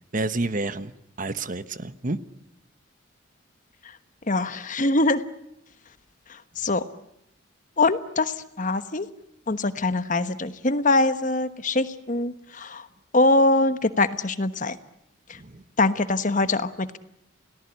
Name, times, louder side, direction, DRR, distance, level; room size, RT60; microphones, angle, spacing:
voice 1, 0.1-0.9 1.2-2.2 15.3-15.6, right 2 dB, 40° right, 13 dB, 1.1 m, -29 dB
voice 2, 4.3-5.2 6.6-6.8 7.8-9.1 9.5-12.8 13.1-14.8 15.8-17.0, left 2 dB, 40° left, 12 dB, 1.2 m, -23 dB
29.5 x 18.5 x 10.0 m, 0.79 s
head